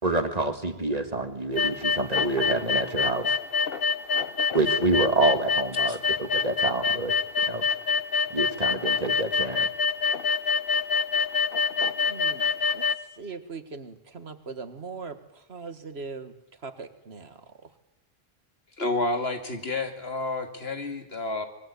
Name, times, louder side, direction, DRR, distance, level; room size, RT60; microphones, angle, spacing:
voice 1, 0.0-3.3 4.5-7.2 7.5-7.6 8.3-9.7, right 2 dB, 40° right, 8 dB, 2.2 m, -27 dB
sound 1, 1.6-13.0, left 6 dB, 65° left, 1.4 m, -25 dB
voice 2, 12.0-12.5 12.7-12.8 13.2-16.3 16.6-17.4, right 4 dB, 85° right, 10 dB, 2.0 m, -40 dB
voice 3, 18.8-21.5, left 2 dB, 85° left, 6 dB, 2.8 m, -30 dB
25.5 x 21.0 x 8.5 m, 0.85 s
omnidirectional pair, 1.0 m